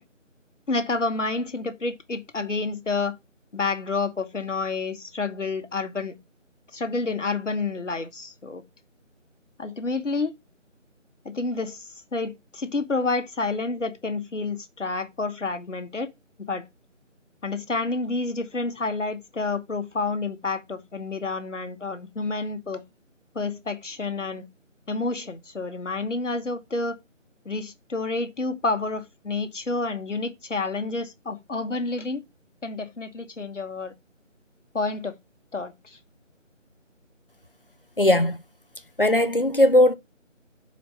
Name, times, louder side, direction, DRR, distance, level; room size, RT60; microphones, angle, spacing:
voice 1, 0.7-3.2 3.5-6.1 6.7-8.6 9.6-10.3 11.2-16.1 16.4-16.7 17.4-22.8 23.3-24.4 24.9-27.0 27.4-32.2 32.6-33.9 34.7-35.2 35.5-36.0, left 3 dB, 70° left, 1.3 m, -29 dB
voice 2, 38.0-38.4 39.0-40.0, left 1 dB, 45° left, 0.5 m, -18 dB
5.8 x 4.3 x 5.4 m
figure-of-eight pair, 175°, 39 cm